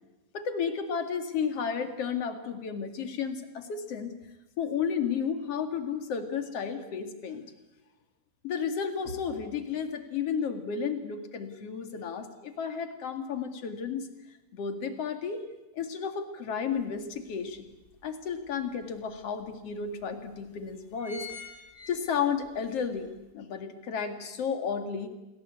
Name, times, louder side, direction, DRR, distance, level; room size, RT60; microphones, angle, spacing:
voice 1, 0.3-4.1 4.6-7.4 8.4-14.1 14.5-15.4 15.7-17.6 18.0-21.3 21.9-25.1, left 6 dB, 45° left, 7 dB, 2.6 m, -32 dB
sound 1, 16.8-16.9 17.3-18.5 19.1-19.2 19.5-19.6 20.3-20.5 20.7-22.6 23.0-23.1, left 5 dB, 15° left, 3.2 m, -45 dB
28.0 x 22.0 x 8.4 m, 1.0 s
omnidirectional pair, 4.7 m